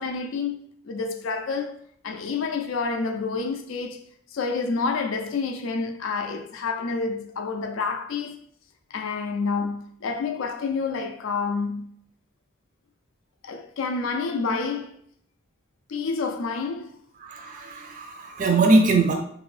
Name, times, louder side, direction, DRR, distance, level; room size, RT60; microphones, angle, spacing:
voice 1, 0.0-1.8 2.0-4.0 4.3-8.4 8.9-11.9 13.4-14.9 15.9-17.0, left 4 dB, 65° left, 0.4 m, -28 dB
voice 2, 17.2-19.1, right 2 dB, 40° right, 0.4 m, -21 dB
2.9 x 2.6 x 3.1 m
head